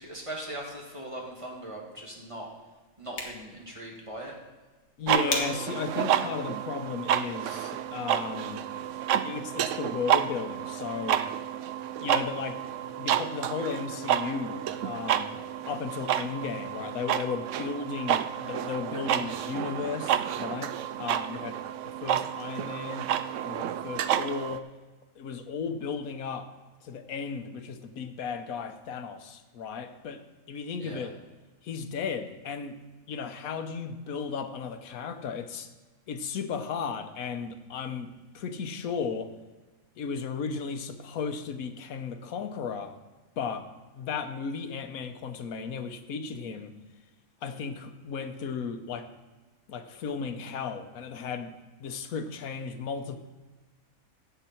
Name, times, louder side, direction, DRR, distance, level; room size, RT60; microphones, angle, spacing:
voice 1, 0.0-2.5 3.0-4.4 30.8-31.1, right 1 dB, 20° right, -3 dB, 2.2 m, -40 dB
sound 1, 2.9-8.0, left 2 dB, 50° left, 1.9 m, -41 dB
voice 2, 5.0-8.7 9.2-11.3 12.0-12.6 13.0-21.6 22.0-23.1 23.4-24.7 25.2-26.5 26.8-30.2 30.5-31.2 31.6-32.8 33.1-35.7 36.1-39.3 40.0-43.0 43.4-43.7 43.9-46.7 47.4-49.1 49.7-51.5 51.8-53.2, left 5 dB, 90° left, 8 dB, 1.3 m, -35 dB
sound 2, 5.1-24.6, right 10 dB, 70° right, 0.9 m, -30 dB
16.0 x 6.9 x 4.4 m, 1.3 s
omnidirectional pair, 1.4 m